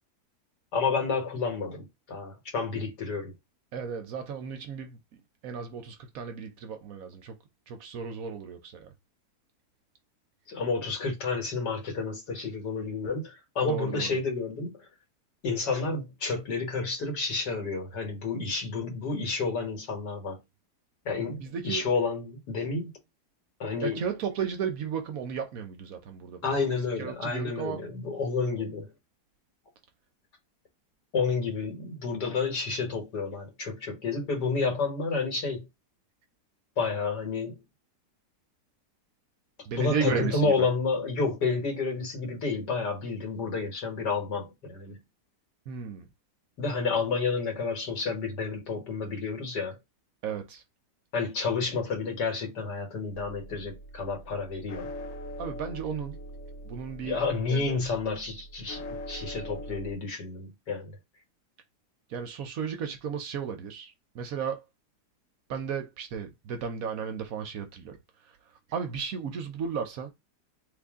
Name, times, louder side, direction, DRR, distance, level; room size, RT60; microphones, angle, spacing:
voice 1, 0.7-3.3 10.5-14.9 15.4-20.4 21.1-22.9 23.6-24.1 26.4-28.9 31.1-35.7 36.8-37.6 39.8-45.0 46.6-49.8 51.1-54.9 57.0-61.0, left 4 dB, 90° left, 1.9 m, -30 dB
voice 2, 3.7-5.0 5.4-7.4 7.7-8.9 13.7-14.1 21.3-21.9 23.8-26.6 27.0-27.8 39.7-40.7 45.7-46.1 50.2-50.6 55.4-56.2 56.7-57.2 57.5-57.8 62.1-64.6 65.5-68.0 68.7-70.1, right 7 dB, 65° right, 1.0 m, -34 dB
sound 1, 53.1-59.9, equal, 70° left, 1.1 m, -42 dB
3.3 x 2.6 x 3.5 m
omnidirectional pair, 1.7 m